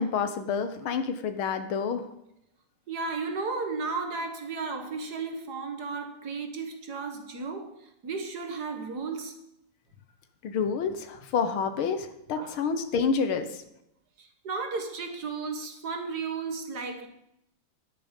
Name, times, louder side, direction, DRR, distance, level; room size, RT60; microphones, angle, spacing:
voice 1, 0.0-2.1 10.4-13.5, left 6 dB, 85° left, 2.0 m, -28 dB
voice 2, 2.9-9.3 12.4-12.6 14.2-17.1, right 4 dB, 55° right, 1.9 m, -34 dB
10.5 x 10.0 x 5.2 m
omnidirectional pair, 2.2 m